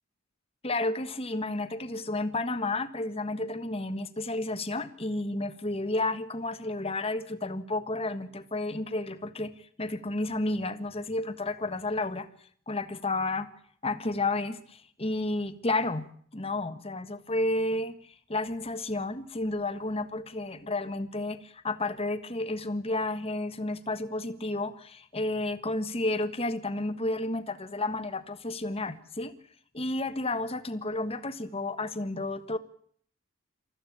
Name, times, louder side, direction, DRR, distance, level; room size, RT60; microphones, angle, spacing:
voice 1, 0.6-9.5 9.8-12.3 12.7-13.5 13.8-29.3 29.7-32.6, left 2 dB, 25° left, 11 dB, 1.4 m, -31 dB
28.0 x 14.5 x 8.8 m, 0.62 s
head